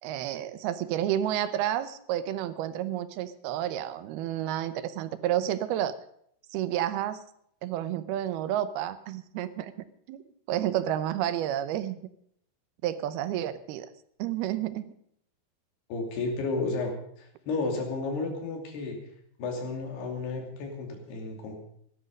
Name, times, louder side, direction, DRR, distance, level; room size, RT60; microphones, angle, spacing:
voice 1, 0.0-5.9 6.5-7.2 7.6-9.7 10.1-10.2 10.5-12.0 12.8-13.9 14.2-14.8, right 11 dB, 80° right, 13 dB, 2.7 m, -30 dB
voice 2, 15.9-19.0 19.4-21.6, left 3 dB, 85° left, 2 dB, 4.8 m, -32 dB
16.0 x 12.5 x 5.3 m, 0.69 s
omnidirectional pair, 4.5 m